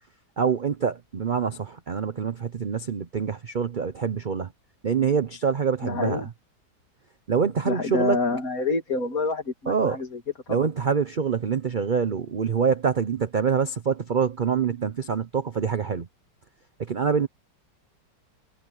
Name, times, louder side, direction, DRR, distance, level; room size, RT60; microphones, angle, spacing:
voice 1, 0.4-4.5 4.8-6.3 7.3-8.2 9.7-10.0 10.5-16.1 16.8-17.3, right 6 dB, 60° right, 0.5 m, -25 dB
voice 2, 5.8-6.3 7.7-10.2 10.5-10.6, left 3 dB, 50° left, 2.7 m, -27 dB
omnidirectional pair, 2.0 m